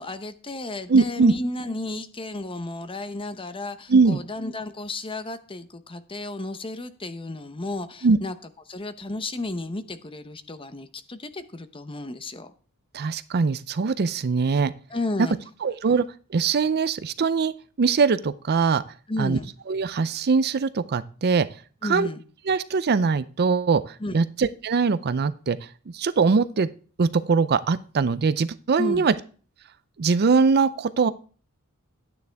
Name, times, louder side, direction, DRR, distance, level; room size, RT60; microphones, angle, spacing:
voice 1, 0.0-8.4 8.7-12.5 14.9-15.4 19.1-19.5 21.8-22.2 24.0-24.2 28.8-29.1, left 2 dB, 25° left, 11 dB, 0.8 m, -33 dB
voice 2, 0.9-1.3 3.9-4.2 8.0-8.2 12.9-14.7 15.6-16.0 16.3-17.5 17.8-18.8 19.2-19.4 19.7-21.5 21.9-22.1 22.5-25.6 25.9-26.7 27.0-29.1 30.0-31.1, right 4 dB, 45° right, 14 dB, 0.5 m, -21 dB
11.5 x 9.5 x 3.4 m, 0.40 s
head